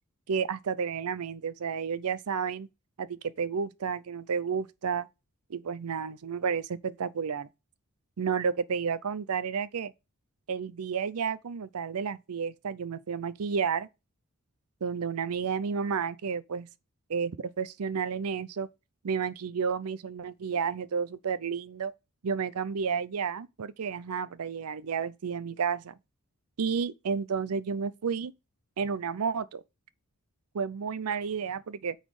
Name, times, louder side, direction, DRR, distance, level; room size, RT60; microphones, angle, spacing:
voice 1, 0.3-2.7 3.0-5.1 5.5-7.5 8.2-9.9 10.5-13.9 14.8-16.7 17.1-18.7 19.0-21.9 22.2-25.9 26.6-28.3 28.8-29.6 30.5-32.0, right 6 dB, 85° right, 0.5 m, -31 dB
9.0 x 4.1 x 4.9 m
head